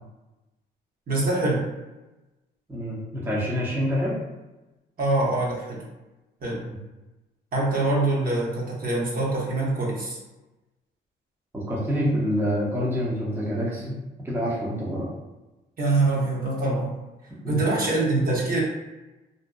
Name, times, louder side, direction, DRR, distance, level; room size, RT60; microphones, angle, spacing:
voice 1, 1.1-1.6 5.0-5.8 6.4-6.6 7.5-10.2 15.8-16.9 17.5-18.6, right 2 dB, 45° right, -4 dB, 0.8 m, -24 dB
voice 2, 2.7-4.1 11.5-14.0 14.2-15.1 17.4-17.6, equal, 10° right, -6 dB, 0.6 m, -26 dB
2.6 x 2.1 x 2.2 m, 1.1 s
cardioid pair, 90°, 20 cm